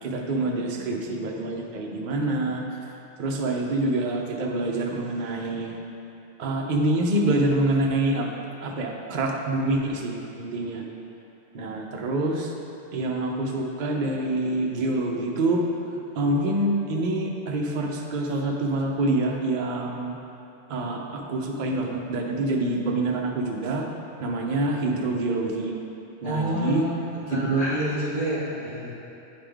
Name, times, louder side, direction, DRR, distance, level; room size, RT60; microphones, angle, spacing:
voice 1, 0.0-2.6 3.2-5.8 6.4-8.3 8.6-10.8 11.5-12.5 12.9-15.6 16.2-20.2 20.7-23.9 24.2-25.7 26.2-26.8 27.3-27.7, right 2 dB, 50° right, 0 dB, 0.7 m, -26 dB
voice 2, 26.2-28.9, equal, 75° left, -9 dB, 1.9 m, -29 dB
9.6 x 3.6 x 3.4 m, 2.9 s
omnidirectional pair, 1.1 m